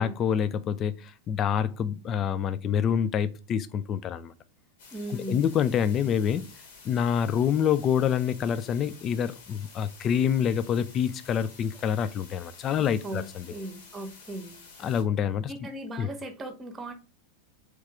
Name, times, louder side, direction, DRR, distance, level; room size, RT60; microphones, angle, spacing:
voice 1, 0.0-4.3 5.1-6.5 6.8-13.5 14.8-15.5 16.0-16.1, left 8 dB, 30° left, 0.4 m, -26 dB
sound 1, 4.8-15.0, left 4 dB, 55° left, 1.4 m, -50 dB
voice 2, 4.9-5.5 13.0-14.6 15.5-16.9, right 1 dB, 20° right, 1.0 m, -38 dB
3.6 x 3.2 x 4.6 m
figure-of-eight pair, 90°, 0 cm